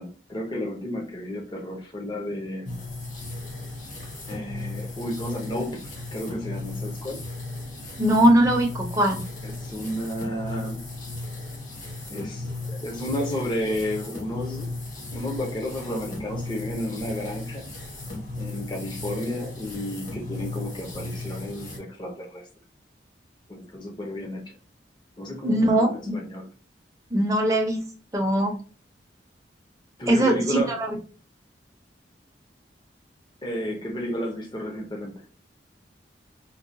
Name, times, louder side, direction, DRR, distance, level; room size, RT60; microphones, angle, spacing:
voice 1, 0.0-2.8 4.3-5.8 6.1-7.2 9.4-10.8 12.1-14.7 15.1-17.7 18.4-22.5 23.5-24.6 25.2-26.5 30.0-30.8 33.4-35.2, left 1 dB, 25° left, 1 dB, 0.8 m, -32 dB
sound 1, 2.7-21.8, left 2 dB, 45° left, 1.2 m, -36 dB
voice 2, 8.0-9.2 25.4-26.2 27.1-27.9 28.1-28.5 30.1-30.8, right 1 dB, 20° right, 0 dB, 0.7 m, -21 dB
4.6 x 2.3 x 2.6 m, 0.37 s
head